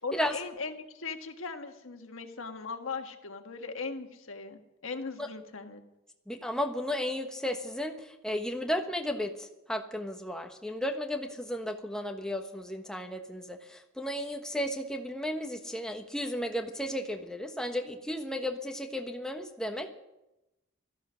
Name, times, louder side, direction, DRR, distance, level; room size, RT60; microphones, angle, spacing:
voice 1, 0.0-5.8, left 4 dB, 85° left, 6 dB, 1.5 m, -39 dB
voice 2, 6.3-19.9, equal, 5° left, 4 dB, 1.3 m, -34 dB
16.5 x 13.5 x 6.3 m, 0.95 s
head